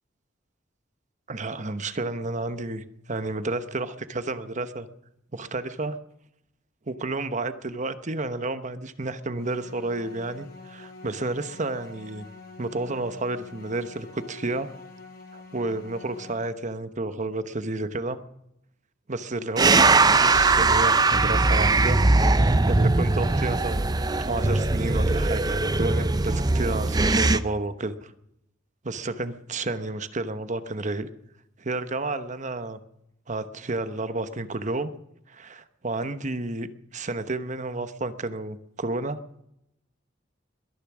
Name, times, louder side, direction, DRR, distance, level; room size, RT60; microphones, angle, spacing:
voice 1, 1.3-4.9 5.3-6.0 6.9-12.3 12.6-14.7 15.3-18.2 19.1-22.0 22.6-24.0 24.3-28.1 28.8-31.1 31.6-32.8 33.3-34.9 35.3-36.7 36.9-39.2, right 2 dB, 40° right, 11 dB, 1.0 m, -31 dB
sound 1, 9.3-16.4, left 3 dB, 55° left, 5.1 m, -46 dB
sound 2, 19.6-27.4, right 3 dB, 20° right, 0.6 m, -20 dB
21.5 x 10.5 x 6.1 m, 0.81 s
head